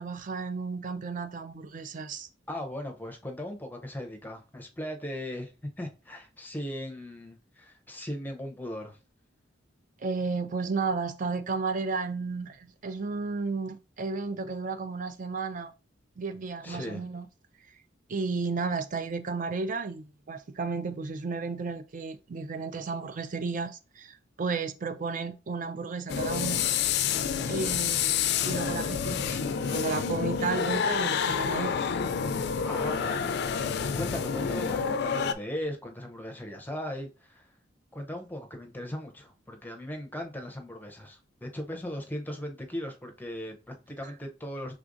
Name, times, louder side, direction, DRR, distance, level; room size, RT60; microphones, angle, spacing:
voice 1, 0.0-2.3 10.0-15.7 16.2-17.3 18.1-26.6 27.5-29.4 29.7-31.7 44.0-44.1, right 4 dB, 45° right, 0.4 m, -33 dB
voice 2, 2.5-5.5 5.8-9.0 16.6-17.0 32.6-33.4 33.9-37.5 37.9-44.7, left 1 dB, 10° left, 0.6 m, -38 dB
sound 1, 26.1-35.3, left 7 dB, 60° left, 0.4 m, -28 dB
4.9 x 3.4 x 2.5 m
head